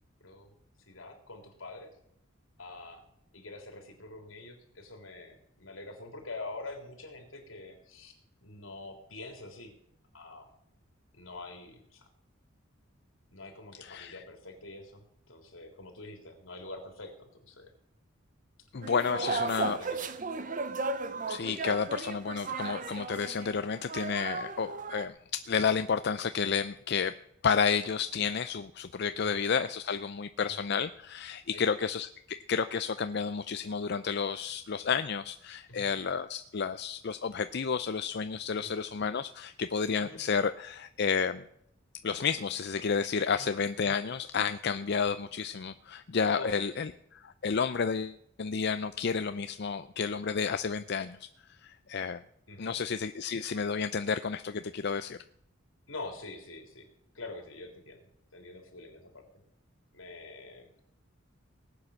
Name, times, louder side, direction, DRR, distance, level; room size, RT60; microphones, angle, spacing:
voice 1, 0.2-0.5 0.9-1.9 2.6-3.0 3.3-8.1 8.4-9.7 10.1-10.5 11.1-12.1 13.3-17.7 19.1-20.1 29.2-29.4 31.5-31.6 35.7-35.9 38.5-38.7 40.0-40.2 43.3-43.5 46.3-46.8 52.5-52.8 55.9-56.9 57.1-58.0 58.3-59.3 59.9-60.7, left 2 dB, 80° left, 4 dB, 3.6 m, -45 dB
voice 2, 13.8-14.2 18.7-19.8 21.3-27.1 27.4-41.4 42.0-51.2 51.6-52.2 52.6-55.2, left 6 dB, 55° left, 10 dB, 0.5 m, -31 dB
sound 1, 18.8-25.1, right 3 dB, 40° right, 0.9 m, -35 dB
19.0 x 8.6 x 6.5 m, 0.74 s
head